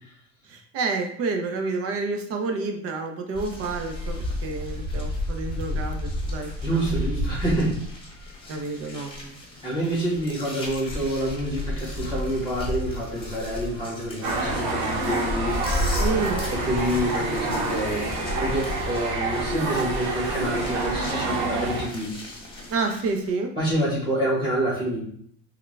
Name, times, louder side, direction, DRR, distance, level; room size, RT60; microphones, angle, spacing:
voice 1, 0.5-6.8 8.5-9.4 16.0-16.4 22.7-23.5, right 3 dB, 45° right, 4 dB, 0.6 m, -29 dB
sound 1, 3.3-23.3, left 1 dB, 15° left, 0.9 m, -33 dB
voice 2, 6.6-7.8 8.5-8.6 9.6-15.6 16.5-22.1 23.6-25.0, right 1 dB, 15° right, -8 dB, 1.4 m, -27 dB
sound 2, 14.2-21.9, right 2 dB, 75° right, 1.0 m, -28 dB
3.6 x 2.3 x 3.2 m, 0.63 s
cardioid pair, 130°, 32 cm